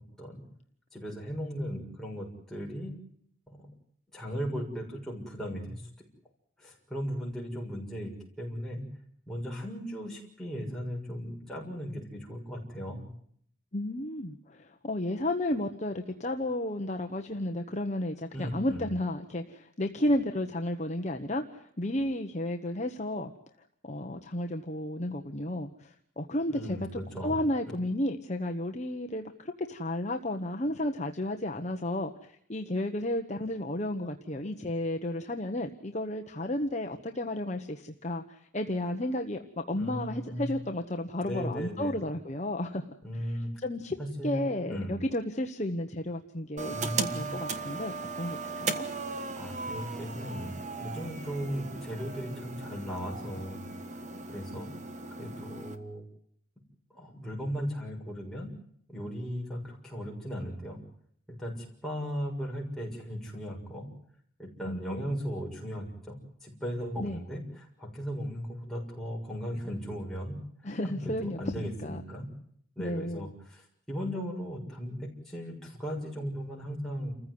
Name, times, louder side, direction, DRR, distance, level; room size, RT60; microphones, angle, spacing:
voice 1, 0.9-3.0 3.5-3.7 4.1-6.1 6.6-8.1 8.4-8.9 9.3-13.1 18.3-18.9 26.5-27.4 39.7-40.5 41.2-42.0 43.0-43.5 44.0-45.0 46.6-47.3 49.4-53.7 54.3-54.7 55.1-56.0 56.9-58.5 58.9-60.8 61.3-63.9 64.4-70.4 70.8-72.3 72.8-77.1, equal, 5° left, -3 dB, 6.6 m, -37 dB
voice 2, 13.7-23.3 23.8-42.8 43.6-44.0 44.2-48.8 64.7-65.1 67.0-67.2 70.6-72.0 72.8-73.3, left 1 dB, 35° left, 4 dB, 1.2 m, -33 dB
sound 1, 46.6-55.8, right 4 dB, 35° right, 1.5 m, -37 dB
29.0 x 15.0 x 9.6 m, 0.66 s
head